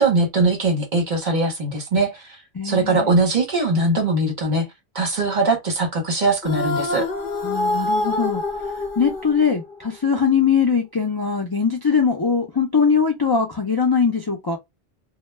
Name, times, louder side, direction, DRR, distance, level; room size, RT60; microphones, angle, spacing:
voice 1, 0.0-2.4 2.6-4.7 4.9-7.1, right 2 dB, 50° right, 0.9 m, -21 dB
voice 2, 2.5-3.2 7.4-8.4 9.0-14.6, left 6 dB, 40° left, 0.3 m, -21 dB
sound 1, 6.4-9.8, left 2 dB, 60° left, 0.7 m, -25 dB
2.2 x 2.1 x 3.1 m
omnidirectional pair, 1.1 m